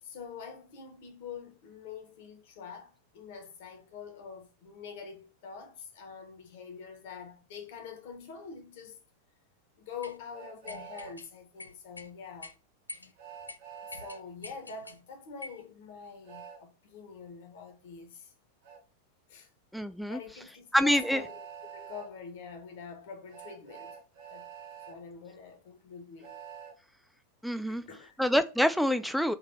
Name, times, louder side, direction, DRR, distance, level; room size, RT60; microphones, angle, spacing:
voice 1, 0.0-9.0 9.8-12.6 12.9-13.1 13.8-18.3 19.3-19.5 20.1-21.4 21.7-24.0 24.3-24.5 24.9-26.4 27.7-28.2, left 6 dB, 55° left, 1.1 m, -45 dB
sound 1, 10.0-10.2 10.7-11.3 11.6-12.1 12.4-12.5 12.9-13.1 13.5-13.6 13.9-15.0 15.4-15.6, left 3 dB, 80° left, 0.4 m, -45 dB
Train, 10.3-11.1 13.2-14.2 16.3-16.6 18.6-18.8 20.8-22.1 23.3-24.9 26.2-26.7, right 8 dB, 50° right, 1.2 m, -46 dB
voice 2, 19.7-20.2 20.7-21.2 27.4-27.8 28.2-29.3, equal, ahead, 0.4 m, -26 dB
4.0 x 2.6 x 4.1 m
figure-of-eight pair, 90°, 0 cm